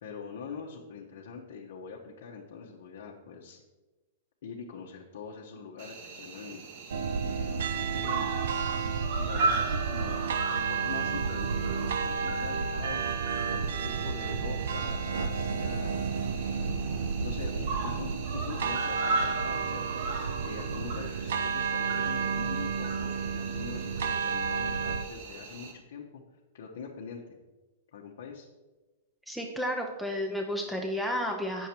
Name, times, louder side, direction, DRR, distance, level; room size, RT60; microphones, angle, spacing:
voice 1, 0.0-3.6 4.4-6.6 7.2-8.3 9.2-10.2 10.5-13.0 13.5-26.2 26.5-27.2 27.9-28.5, left 6 dB, 70° left, -1 dB, 1.0 m, -44 dB
Cricket, 5.8-25.7, right 3 dB, 60° right, 1.6 m, -38 dB
sound 1, 6.9-25.0, right 5 dB, 80° right, 0.6 m, -31 dB
voice 2, 29.3-31.7, equal, ahead, 1 dB, 0.7 m, -32 dB
8.0 x 6.5 x 4.4 m, 1.2 s
hypercardioid pair, 135°, 0 cm